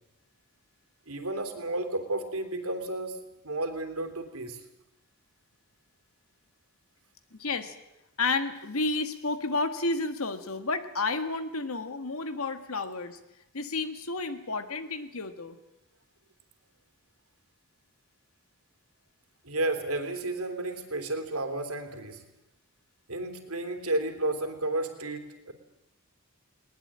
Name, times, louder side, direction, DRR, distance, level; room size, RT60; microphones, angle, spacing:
voice 1, 1.1-3.2 3.4-4.6 19.4-22.2 23.1-25.5, right 2 dB, 80° right, 6 dB, 3.4 m, -32 dB
voice 2, 7.3-7.8 8.2-13.2 13.5-15.6, left 3 dB, 75° left, 9 dB, 1.8 m, -31 dB
20.5 x 19.5 x 8.8 m, 0.92 s
head